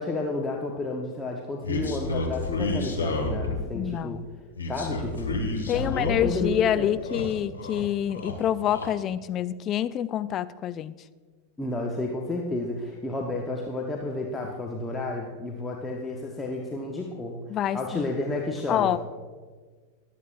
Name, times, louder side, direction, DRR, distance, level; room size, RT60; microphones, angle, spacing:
voice 1, 0.0-4.2 4.7-7.0 11.6-17.4 17.7-19.0, left 2 dB, 10° left, -1 dB, 1.0 m, -31 dB
sound 1, 1.6-3.8 4.6-6.5 6.9-7.8 8.1-8.9, left 2 dB, 75° left, 1.7 m, -30 dB
voice 2, 3.7-4.2 5.7-10.9 17.5-18.1 18.7-19.0, left 10 dB, 30° left, 14 dB, 0.4 m, -27 dB
22.0 x 8.4 x 2.5 m, 1.5 s
figure-of-eight pair, 90°, 0 cm